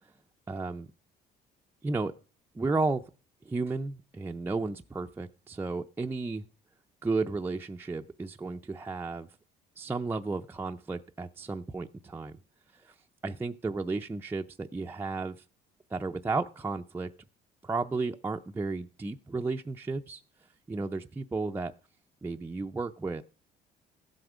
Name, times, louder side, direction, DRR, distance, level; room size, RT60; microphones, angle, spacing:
voice 1, 0.5-0.9 1.8-2.1 2.5-3.1 3.5-6.4 7.0-9.3 9.8-12.4 12.8-12.9 13.2-15.4 15.9-17.1 17.6-20.2 20.7-21.7 22.2-23.2, right 3 dB, 15° right, 4 dB, 0.5 m, -33 dB
15.0 x 7.9 x 5.0 m, 0.38 s
cardioid pair, 110°, 17 cm